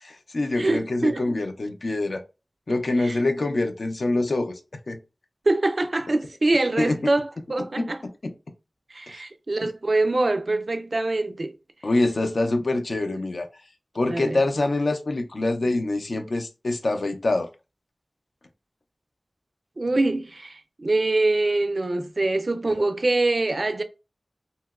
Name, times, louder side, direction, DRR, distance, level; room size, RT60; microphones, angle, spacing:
voice 1, 0.0-2.2 2.7-4.6 4.9-5.0 6.8-7.0 7.8-7.9 8.2-8.3 9.6-9.7 11.8-13.5 13.9-17.5, left 2 dB, 85° left, 0.4 m, -25 dB
voice 2, 0.6-1.3 3.0-3.2 5.5-8.0 8.9-11.6 14.1-14.4 19.8-23.8, right 2 dB, 65° right, 0.4 m, -24 dB
2.8 x 2.8 x 2.3 m
wide cardioid pair, 65°, 0 cm